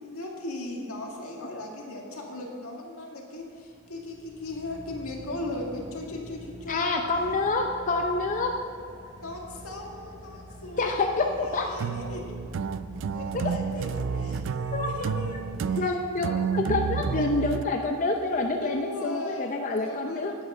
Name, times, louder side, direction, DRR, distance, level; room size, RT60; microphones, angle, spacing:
voice 1, 0.0-7.2 9.2-12.3 13.1-16.6 18.6-20.3, left 1 dB, 80° left, 0 dB, 1.8 m, -38 dB
Car / Idling, 3.4-16.4, equal, 20° right, 0.9 m, -45 dB
voice 2, 6.7-8.5 10.8-11.7 13.3-13.5 14.7-15.1 15.8-20.3, left 3 dB, 35° left, 2 dB, 0.5 m, -27 dB
sound 1, 11.8-17.6, right 6 dB, 60° right, 0.3 m, -30 dB
9.8 x 8.1 x 5.5 m, 2.3 s
head